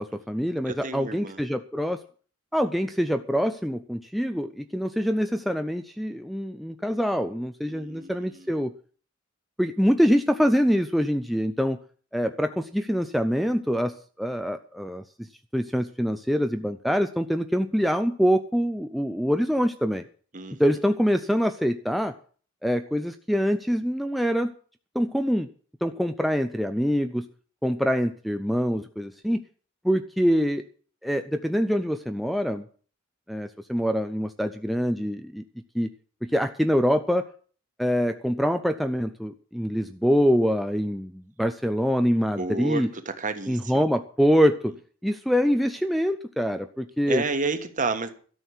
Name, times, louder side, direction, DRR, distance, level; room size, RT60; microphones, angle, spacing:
voice 1, 0.0-2.0 2.5-8.7 9.6-11.8 12.1-15.0 15.5-20.0 20.6-22.1 22.6-24.5 24.9-25.5 25.8-27.3 27.6-29.4 29.8-30.7 31.0-32.6 33.3-35.4 35.7-35.9 36.2-37.2 37.8-42.9 43.5-44.7 45.0-47.2, equal, ahead, 0.5 m, -25 dB
voice 2, 0.6-1.4 7.7-8.5 20.3-20.6 42.4-43.9 47.1-48.1, right 3 dB, 40° right, 1.4 m, -31 dB
13.0 x 6.4 x 9.7 m
head